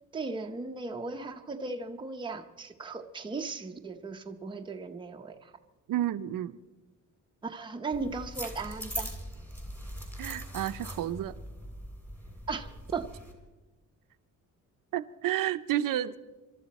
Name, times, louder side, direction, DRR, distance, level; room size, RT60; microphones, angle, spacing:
voice 1, 0.1-5.5 7.4-9.1 12.5-13.1, right 4 dB, 15° right, 0.7 m, -37 dB
voice 2, 5.9-6.5 10.2-11.3 14.9-16.2, right 12 dB, 75° right, 0.7 m, -30 dB
sound 1, 7.9-13.3, equal, 5° left, 2.6 m, -41 dB
27.5 x 12.5 x 4.2 m
wide cardioid pair, 180°, 34 cm